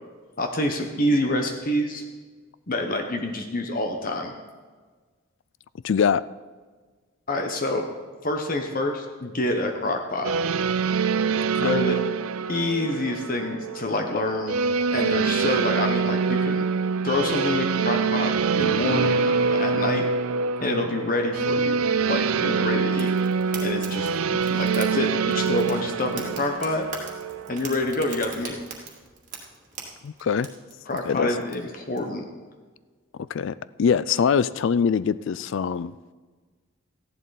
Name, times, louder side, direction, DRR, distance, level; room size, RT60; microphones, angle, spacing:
voice 1, 0.4-2.0 2.7-4.3 7.3-7.9 8.2-10.3 11.6-12.0 12.5-14.6 14.9-16.7 17.0-20.1 20.6-21.8 22.1-23.1 23.6-26.8 27.5-28.7 30.9-32.3, left 2 dB, 40° left, 4 dB, 0.9 m, -27 dB
voice 2, 5.8-6.2 11.5-11.8 30.0-30.5 30.9-31.3 33.3-35.9, left 6 dB, 55° left, 18 dB, 0.3 m, -23 dB
sound 1, 10.2-28.3, right 5 dB, 75° right, 0.5 m, -25 dB
Fire, 22.9-32.0, right 5 dB, 35° right, 2.0 m, -42 dB
14.5 x 11.0 x 4.0 m, 1.4 s
head